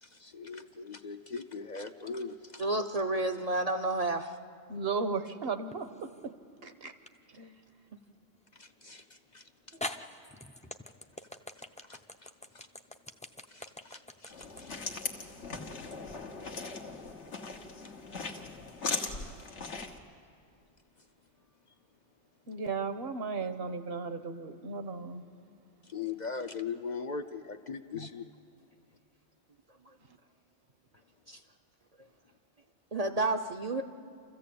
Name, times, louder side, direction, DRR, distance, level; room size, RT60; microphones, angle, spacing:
voice 1, 0.0-2.6 8.5-9.8 11.9-12.7 13.5-15.1 17.8-17.9 25.8-28.3, left 5 dB, 50° left, 6 dB, 0.7 m, -41 dB
voice 2, 2.6-4.3 31.3-31.4 32.9-33.8, right 2 dB, 40° right, 6 dB, 0.7 m, -30 dB
voice 3, 4.7-6.1 6.6-6.9 7.4-7.5 22.5-25.2, right 4 dB, 60° right, 9 dB, 1.2 m, -35 dB
sound 1, 5.7-6.3 7.1-7.2 9.0-9.1 9.8-16.0, left 1 dB, 10° left, 0.4 m, -43 dB
sound 2, 14.3-20.0, left 4 dB, 85° left, 1.6 m, -39 dB
27.5 x 14.5 x 8.5 m, 2.3 s
omnidirectional pair, 1.2 m